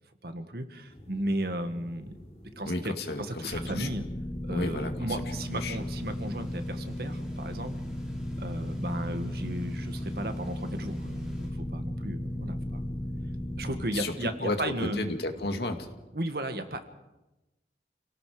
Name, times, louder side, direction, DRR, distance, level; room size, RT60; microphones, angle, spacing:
voice 1, 0.2-2.2 2.6-2.9 3.2-4.0 4.4-7.7 8.4-12.9 13.6-15.0 16.1-16.8, right 1 dB, 60° right, 7 dB, 1.9 m, -35 dB
sound 1, 0.9-16.0, equal, 40° left, 4.4 m, -50 dB
voice 2, 2.6-3.9 4.5-5.2 5.5-5.8 13.9-15.9, left 2 dB, 65° left, 5 dB, 2.3 m, -33 dB
sound 2, 3.5-13.9, left 1 dB, 15° left, 1.3 m, -35 dB
sound 3, 5.3-11.5, equal, 5° right, 5.5 m, -57 dB
30.0 x 18.0 x 5.1 m, 1.0 s
head